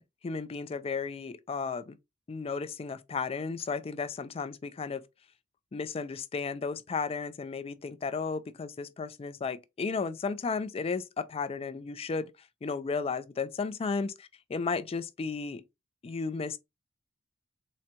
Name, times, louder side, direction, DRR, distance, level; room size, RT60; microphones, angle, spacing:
voice 1, 0.0-2.0 2.3-5.0 5.7-12.3 12.6-14.1 14.5-15.6 16.0-16.6, left 4 dB, 30° left, 0.3 m, -34 dB
3.9 x 2.2 x 2.7 m
head